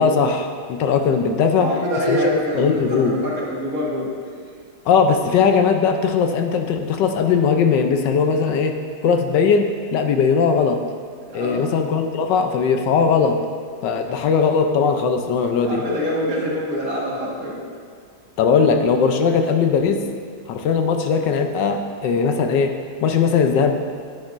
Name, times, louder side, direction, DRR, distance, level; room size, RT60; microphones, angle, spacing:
voice 1, 0.0-1.7 2.1-2.2 2.5-3.2 4.9-8.7 9.0-10.8 11.3-13.4 13.8-15.8 18.4-20.0 20.5-22.7 23.0-23.7, left 6 dB, 80° left, 5 dB, 1.3 m, -19 dB
voice 2, 1.6-4.1 11.2-11.7 14.1-14.2 15.6-17.6, equal, 50° right, -5 dB, 2.0 m, -25 dB
10.5 x 9.6 x 2.5 m, 2.1 s
omnidirectional pair, 2.0 m